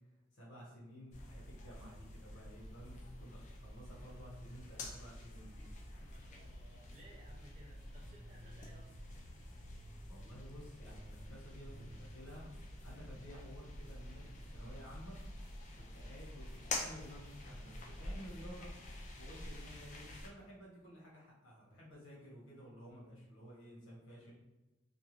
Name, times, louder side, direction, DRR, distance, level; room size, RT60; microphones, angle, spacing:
voice 1, 0.3-5.7 10.1-12.5 12.8-15.2 15.7-18.7 19.2-24.3, equal, 70° left, -5 dB, 1.1 m, -53 dB
sound 1, 1.1-20.3, left 2 dB, 35° left, 0.4 m, -48 dB
voice 2, 6.0-9.0, right 1 dB, 35° right, -3 dB, 0.3 m, -61 dB
2.4 x 2.2 x 3.1 m, 1.0 s
head